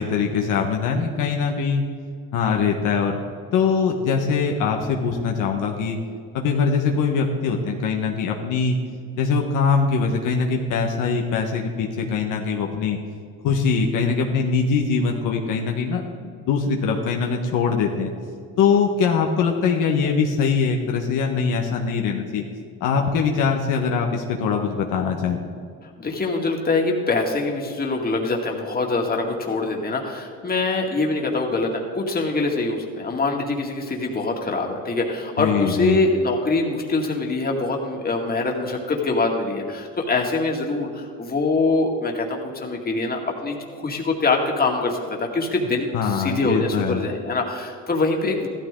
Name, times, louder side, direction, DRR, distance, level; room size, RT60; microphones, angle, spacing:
voice 1, 0.0-1.8 2.3-3.2 3.5-6.0 6.3-8.8 9.2-13.0 13.4-18.1 18.6-22.4 22.8-25.4 35.4-36.0 45.9-47.0, left 5 dB, 75° left, 2 dB, 1.3 m, -22 dB
voice 2, 26.0-48.5, left 3 dB, 30° left, 0 dB, 2.2 m, -24 dB
14.5 x 13.0 x 3.8 m, 2.3 s
cardioid pair, 90°, 32 cm